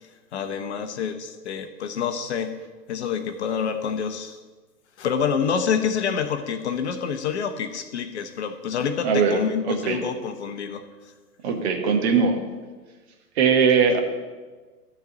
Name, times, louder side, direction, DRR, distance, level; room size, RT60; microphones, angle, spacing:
voice 1, 0.0-2.6 2.9-4.4 5.0-10.8, left 7 dB, 45° left, 8 dB, 0.8 m, -27 dB
voice 2, 9.0-9.4 9.7-10.0 11.4-12.4 13.4-14.0, right 5 dB, 40° right, 3 dB, 1.4 m, -20 dB
12.0 x 4.1 x 7.8 m, 1.3 s
figure-of-eight pair, 120°, 48 cm